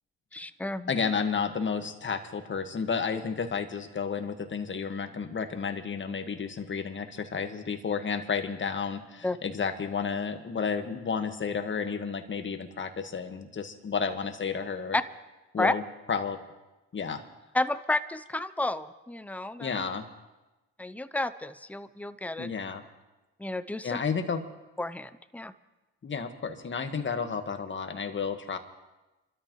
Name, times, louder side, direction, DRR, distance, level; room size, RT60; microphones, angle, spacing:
voice 1, 0.3-0.9 9.2-9.4 14.9-15.0 15.6-15.7 17.5-19.7 20.8-22.5 23.4-24.0 24.8-25.5, left 2 dB, 5° left, 13 dB, 0.7 m, -31 dB
voice 2, 0.9-15.0 15.5-15.8 16.1-16.4 16.9-17.2 19.6-20.1 22.4-22.8 23.8-24.5 26.0-28.6, left 6 dB, 40° left, 6 dB, 1.8 m, -31 dB
27.5 x 13.0 x 3.2 m, 1.1 s
supercardioid pair, 70°, 31 cm